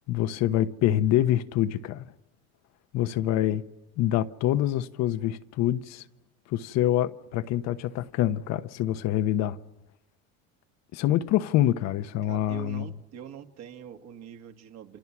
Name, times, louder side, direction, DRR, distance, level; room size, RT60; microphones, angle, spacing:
voice 1, 0.1-2.1 2.9-3.6 4.0-6.0 6.5-9.6 10.9-12.8, left 12 dB, 60° left, 1.1 m, -25 dB
voice 2, 12.2-15.0, right 9 dB, 55° right, 2.2 m, -44 dB
29.5 x 26.5 x 6.1 m
cardioid pair, 130°, 31 cm